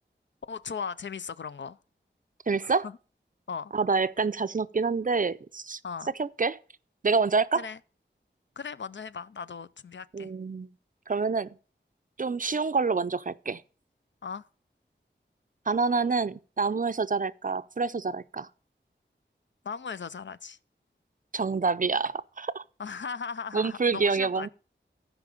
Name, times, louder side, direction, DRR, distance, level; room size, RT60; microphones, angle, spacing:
voice 1, 0.5-1.8 2.6-3.0 3.5-3.7 5.8-6.1 7.5-7.8 8.6-10.3 14.2-14.5 19.6-20.6 22.8-24.5, left 6 dB, 70° left, 0.4 m, -37 dB
voice 2, 2.5-2.9 3.7-5.8 6.2-6.6 7.0-7.6 10.1-10.7 11.1-11.5 12.2-13.6 15.7-18.5 21.3-22.6 23.5-24.5, right 4 dB, 45° right, 0.4 m, -27 dB
14.5 x 5.0 x 4.9 m
wide cardioid pair, 60°, 20 cm